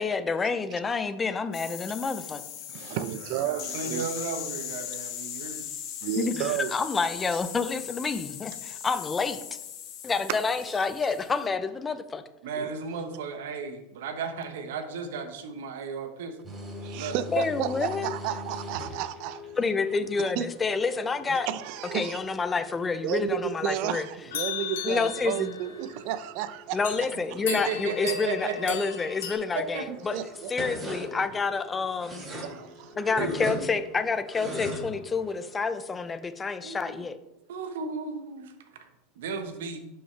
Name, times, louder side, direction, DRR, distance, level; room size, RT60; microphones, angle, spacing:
voice 1, 0.0-2.4 6.2-9.4 10.0-12.2 17.3-18.1 19.6-21.5 21.9-24.1 24.8-25.5 26.7-30.2 30.5-32.2 33.0-37.2, left 4 dB, 20° left, 0.6 m, -28 dB
sound 1, 1.5-11.4, left 9 dB, 55° left, 1.3 m, -39 dB
voice 2, 2.7-4.1 6.0-6.7 12.6-12.7 16.8-19.4 20.2-20.5 21.5-22.2 23.0-26.9 29.9-30.5 32.4-32.9, right 11 dB, 60° right, 0.6 m, -32 dB
voice 3, 3.4-5.7 12.4-16.4 16.9-17.1 20.0-20.1 27.1-28.8 29.5-29.9 32.4-32.7 32.9-33.4 36.6-37.0 37.5-38.5 38.8-38.9 39.2-39.8, right 5 dB, 80° right, 1.1 m, -35 dB
sound 2, 16.4-35.6, left 1 dB, 20° right, 3.3 m, -41 dB
sound 3, 24.3-26.0 26.8-27.1 27.5-29.3, left 10 dB, 80° left, 1.2 m, -36 dB
11.0 x 5.6 x 3.3 m
supercardioid pair, 115°, 0 cm